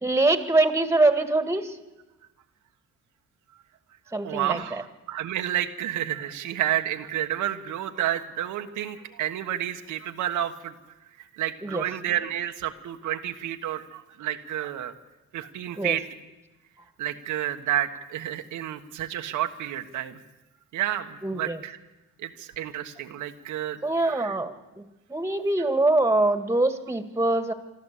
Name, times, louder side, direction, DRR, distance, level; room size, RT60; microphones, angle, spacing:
voice 1, 0.0-1.8 4.1-4.8 11.6-11.8 15.8-16.0 21.2-21.6 23.8-24.8 25.1-27.5, right 2 dB, 10° right, 10 dB, 1.9 m, -24 dB
voice 2, 4.2-10.7 11.3-14.9 15.3-16.0 17.0-20.2 20.7-21.8 22.2-23.8 24.0-24.4 25.6-25.7, right 11 dB, 85° right, 5 dB, 1.4 m, -30 dB
24.5 x 13.0 x 8.3 m, 1.1 s
cardioid pair, 90°, 30 cm